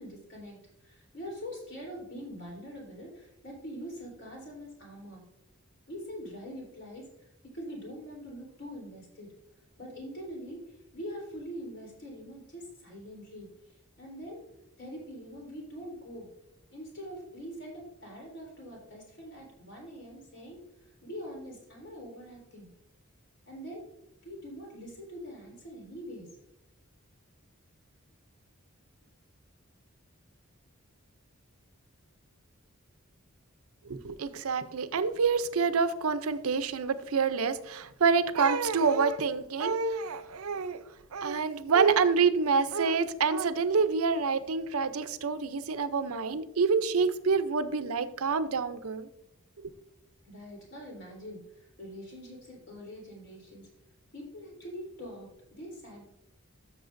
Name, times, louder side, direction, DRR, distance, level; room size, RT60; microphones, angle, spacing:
voice 1, 0.0-5.2 5.9-9.3 9.8-13.5 14.0-14.4 14.8-16.3 16.7-20.6 21.0-22.7 23.5-23.9 24.2-26.3 50.2-53.7 54.1-56.1, equal, 55° left, -1 dB, 3.6 m, -44 dB
voice 2, 33.9-40.8 41.1-49.1 49.6-49.7, right 5 dB, 85° right, 12 dB, 0.6 m, -27 dB
13.0 x 6.6 x 2.6 m, 0.82 s
head